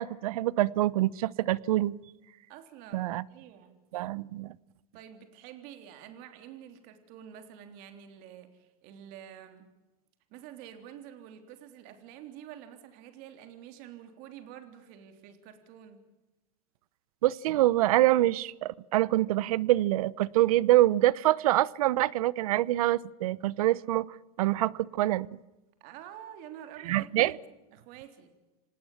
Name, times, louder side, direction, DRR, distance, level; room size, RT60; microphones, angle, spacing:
voice 1, 0.0-2.0 2.9-3.2 3.9-4.5 17.2-24.1 24.4-25.4 26.9-27.3, right 15 dB, 75° right, 22 dB, 0.9 m, -25 dB
voice 2, 2.5-3.8 4.9-9.7 10.3-16.0 25.8-27.4 27.7-28.3, right 10 dB, 50° right, 8 dB, 3.5 m, -48 dB
27.5 x 19.0 x 7.3 m, 1.0 s
supercardioid pair, 145°, 19 cm